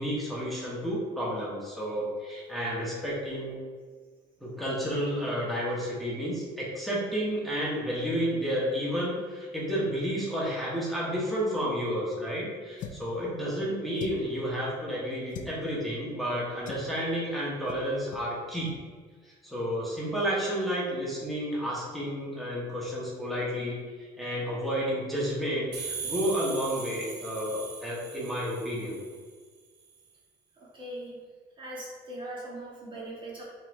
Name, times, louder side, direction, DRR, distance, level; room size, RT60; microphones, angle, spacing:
voice 1, 0.0-3.6 4.4-18.7 19.2-29.0, equal, ahead, -6 dB, 1.1 m, -31 dB
sound 1, 12.8-13.1 14.0-14.4 15.3-15.6 16.7-16.9 17.7-17.9 18.1-18.3 18.6-18.8, left 6 dB, 50° left, 0.5 m, -41 dB
sound 2, 25.7-29.3, right 5 dB, 85° right, 0.9 m, -39 dB
voice 2, 30.5-31.2 31.6-33.4, right 1 dB, 30° right, -4 dB, 1.1 m, -40 dB
5.3 x 3.1 x 2.6 m, 1.5 s
cardioid pair, 110°, 17 cm